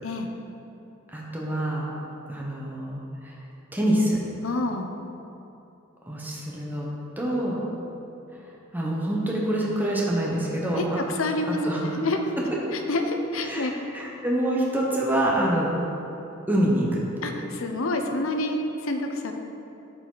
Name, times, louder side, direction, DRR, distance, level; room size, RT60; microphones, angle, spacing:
voice 1, 1.1-1.9 2.3-3.3 3.7-4.2 6.1-6.9 7.2-7.6 8.7-11.0 11.5-11.8 13.5-13.7 13.9-15.8 16.5-17.0, right 1 dB, 10° right, -4 dB, 1.0 m, -26 dB
voice 2, 4.4-4.9 10.8-12.2 12.7-13.7 17.2-19.3, left 2 dB, 80° left, 5 dB, 0.7 m, -28 dB
10.5 x 4.9 x 4.0 m, 2.8 s
head